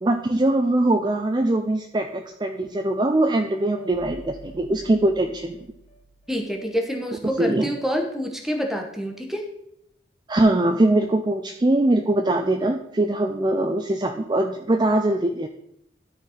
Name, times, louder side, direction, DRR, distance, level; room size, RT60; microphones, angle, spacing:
voice 1, 0.0-5.6 7.2-7.7 10.3-15.5, right 1 dB, 25° right, 5 dB, 0.4 m, -22 dB
sound 1, 3.8-6.9, right 2 dB, 30° left, 1.3 m, -46 dB
voice 2, 6.3-9.5, equal, ahead, 3 dB, 1.1 m, -27 dB
12.5 x 4.3 x 4.2 m, 0.75 s
head